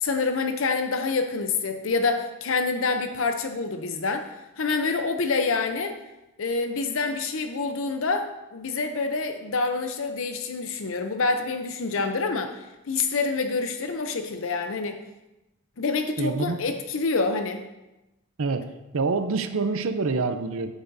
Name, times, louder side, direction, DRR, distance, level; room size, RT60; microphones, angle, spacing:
voice 1, 0.0-4.3 4.6-6.0 6.4-15.0 15.8-17.7, left 4 dB, 65° left, 7 dB, 0.6 m, -27 dB
voice 2, 16.2-16.6 18.4-20.7, right 4 dB, 70° right, 9 dB, 0.6 m, -26 dB
9.7 x 8.1 x 2.7 m, 0.98 s
head